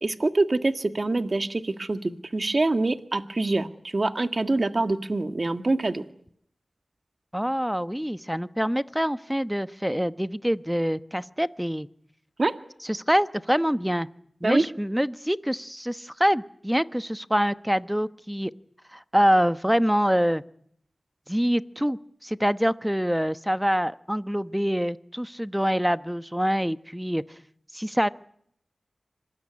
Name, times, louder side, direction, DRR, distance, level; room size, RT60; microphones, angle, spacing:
voice 1, 0.0-6.0 12.4-12.5 14.4-14.7, right 2 dB, 50° right, 8 dB, 1.7 m, -25 dB
voice 2, 7.3-11.9 12.9-14.1 14.4-18.5 18.9-20.4 21.3-27.2 27.7-28.1, equal, 5° right, 13 dB, 1.0 m, -25 dB
25.5 x 20.0 x 9.7 m, 0.68 s
cardioid pair, 45°, 0 cm